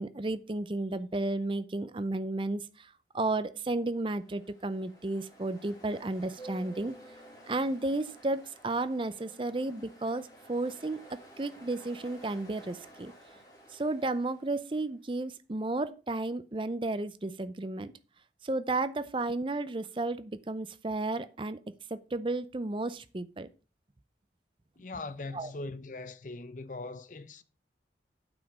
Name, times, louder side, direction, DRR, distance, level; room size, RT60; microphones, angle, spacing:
voice 1, 0.0-2.9 3.1-7.0 7.5-13.1 13.7-17.9 18.4-21.6 21.9-23.5 25.3-25.5, right 2 dB, 30° right, 0.5 m, -33 dB
Ocean, 3.8-14.9, right 1 dB, 20° left, 2.5 m, -53 dB
voice 2, 24.8-27.4, left 3 dB, 45° left, 0.7 m, -41 dB
8.8 x 5.0 x 6.1 m
head